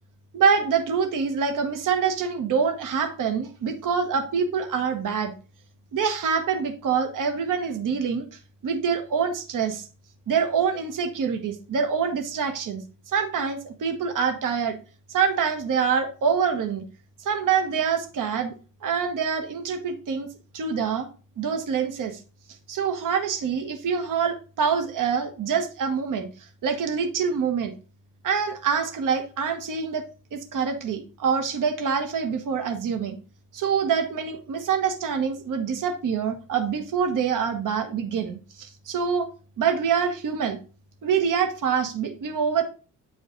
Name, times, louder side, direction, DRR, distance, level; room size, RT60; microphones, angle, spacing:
voice 1, 0.3-5.3 5.9-8.3 8.6-9.9 10.3-12.8 13.1-14.8 15.1-16.8 17.2-18.5 18.8-20.3 20.5-21.1 21.4-22.2 22.7-26.3 26.6-27.7 28.2-30.0 30.3-33.2 33.5-39.3 39.6-40.6 41.0-42.6, right 6 dB, 55° right, 6 dB, 1.3 m, -25 dB
9.4 x 5.0 x 3.9 m, 0.35 s
cardioid pair, 140°, 37 cm